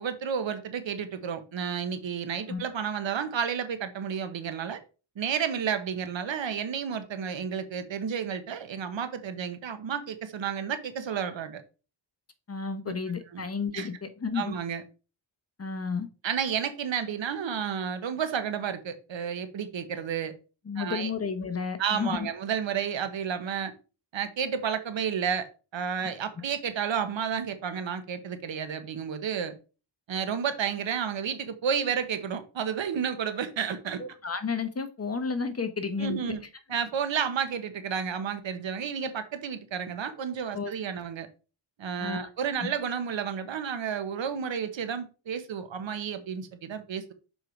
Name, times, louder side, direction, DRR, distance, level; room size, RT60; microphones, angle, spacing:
voice 1, 0.0-4.8 5.2-11.6 13.3-13.4 13.7-13.9 14.3-14.8 16.2-20.3 20.8-21.1 21.8-23.7 24.1-29.5 30.1-34.0 36.0-36.4 36.7-41.3 41.8-47.1, right 7 dB, 70° right, 1.2 m, -31 dB
voice 2, 12.5-14.5 15.6-16.1 20.7-22.3 34.0-36.2 40.5-40.7 42.0-42.2 42.6-42.7, left 5 dB, 30° left, 1.0 m, -32 dB
6.7 x 4.6 x 4.5 m
wide cardioid pair, 110°, 46 cm